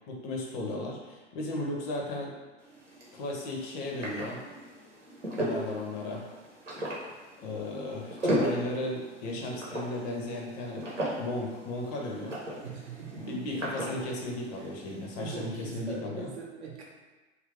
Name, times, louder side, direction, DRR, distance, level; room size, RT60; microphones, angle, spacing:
voice 1, 0.1-2.4 3.1-4.4 5.4-6.3 7.4-10.9 11.2-12.4 13.2-16.3, left 2 dB, 35° left, 0 dB, 0.5 m, -35 dB
sound 1, 2.6-15.5, equal, 85° right, 0.9 m, -37 dB
voice 2, 12.6-13.6 14.6-14.7 15.2-16.9, right 6 dB, 65° right, -1 dB, 0.8 m, -41 dB
2.8 x 2.4 x 3.3 m, 1.2 s
figure-of-eight pair, 90°, 36 cm